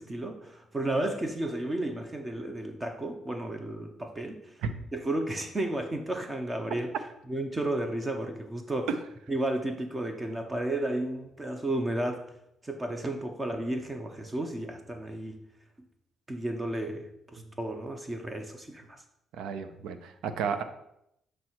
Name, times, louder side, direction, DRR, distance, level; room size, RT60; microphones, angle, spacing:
voice 1, 0.0-4.5 4.9-6.9 7.3-8.9 9.3-12.2 12.6-15.4 16.3-19.0, right 1 dB, 25° right, 5 dB, 0.7 m, -33 dB
voice 2, 19.4-20.6, right 6 dB, 85° right, 10 dB, 0.5 m, -32 dB
7.3 x 3.2 x 4.5 m, 0.78 s
cardioid pair, 90°, 0 cm